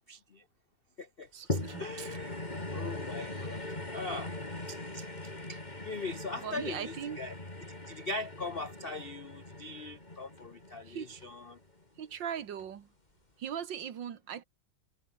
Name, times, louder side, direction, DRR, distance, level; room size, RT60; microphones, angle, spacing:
voice 1, 0.1-0.4 1.0-2.5 2.7-3.6 3.9-4.3 4.7-7.3 7.9-11.6, left 3 dB, 50° left, 0.7 m, -41 dB
voice 2, 1.3-2.2 3.3-3.5 6.4-7.2 10.9-11.1 12.0-12.9 13.4-14.4, right 8 dB, 65° right, 2.0 m, -39 dB
sound 1, 1.5-12.0 12.6-12.7, left 2 dB, 20° left, 3.8 m, -40 dB
omnidirectional pair, 2.2 m